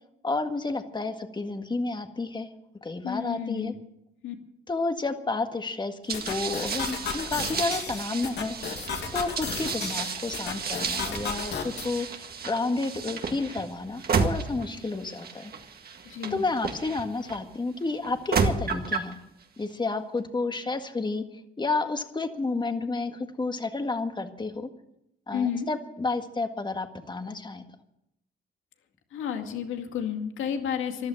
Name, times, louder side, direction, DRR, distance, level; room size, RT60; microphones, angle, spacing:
voice 1, 0.2-2.5 2.8-3.7 4.7-8.6 9.1-15.5 16.3-19.2 19.6-21.2 21.6-24.7 25.3-27.6, left 3 dB, 20° left, 7 dB, 1.7 m, -31 dB
voice 2, 3.0-3.8 4.2-4.4 16.0-16.4 25.3-25.7 29.1-31.1, left 8 dB, 80° left, 5 dB, 2.2 m, -31 dB
sound 1, 6.1-11.9, left 6 dB, 60° left, 2.4 m, -35 dB
sound 2, 6.1-17.4 18.0-19.1, right 5 dB, 50° right, 2.0 m, -32 dB
14.5 x 12.0 x 7.6 m, 0.81 s
cardioid pair, 90°, 20 cm